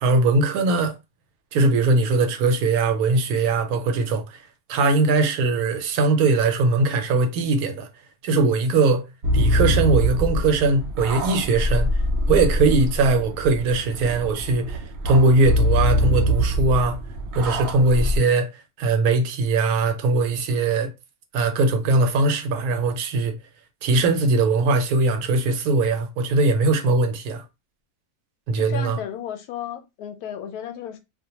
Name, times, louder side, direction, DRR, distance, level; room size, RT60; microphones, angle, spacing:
voice 1, 0.0-0.9 1.5-4.4 4.7-7.9 8.2-9.0 9.3-11.9 12.3-17.0 17.3-18.5 18.8-20.9 21.3-23.3 23.8-27.4 28.5-29.0, right 3 dB, 80° right, 1.0 m, -20 dB
sound 1, 9.2-18.2, equal, 60° right, 0.8 m, -23 dB
voice 2, 28.6-31.0, left 9 dB, 90° left, 1.1 m, -34 dB
2.4 x 2.2 x 2.8 m
omnidirectional pair, 1.6 m